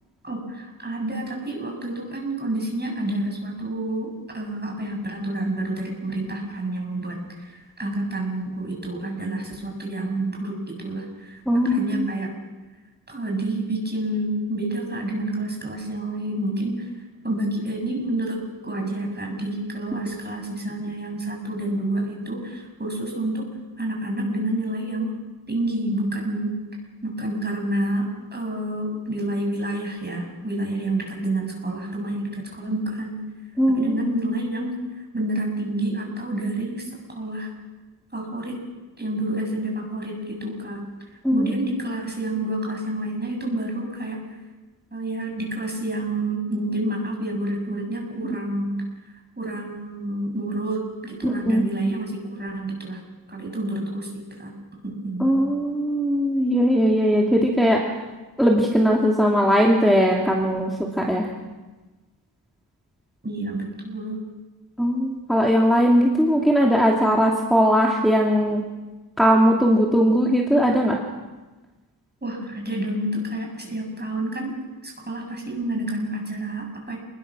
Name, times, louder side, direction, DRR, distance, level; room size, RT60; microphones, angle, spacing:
voice 1, 0.2-12.3 13.1-16.9 17.2-23.5 23.8-25.2 25.5-26.6 27.0-33.2 33.7-34.8 35.1-37.5 38.1-38.6 39.0-40.8 41.3-44.2 44.9-48.8 49.4-53.0 53.3-54.5 54.8-55.3 63.2-64.2 72.2-77.0, right 1 dB, 25° right, 1 dB, 7.3 m, -29 dB
voice 2, 11.5-12.1 33.6-34.0 41.2-41.5 51.2-51.6 55.2-57.8 58.4-60.7 61.0-61.3 64.8-68.6 69.2-71.0, equal, ahead, -2 dB, 2.6 m, -19 dB
28.5 x 21.0 x 6.3 m, 1.2 s
wide cardioid pair, 110°, 40 cm